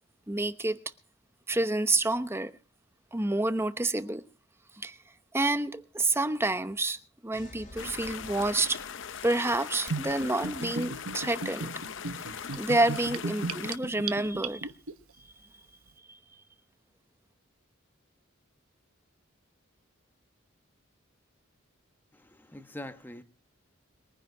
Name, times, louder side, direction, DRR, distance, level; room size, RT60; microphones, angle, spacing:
voice 1, 0.3-0.8 1.5-2.5 3.1-4.2 4.8-5.0 5.3-8.8 9.2-11.7 12.4-14.7, right 2 dB, 10° right, 0.9 m, -28 dB
sound 1, 7.3-10.2, left 1 dB, 40° left, 3.2 m, -51 dB
sound 2, 7.8-13.8, left 7 dB, 60° left, 0.7 m, -40 dB
Gurgling / Bathtub (filling or washing), 9.9-14.9, right 4 dB, 85° right, 1.1 m, -36 dB
voice 2, 22.1-23.2, left 1 dB, 10° left, 1.1 m, -43 dB
22.5 x 10.5 x 4.6 m
head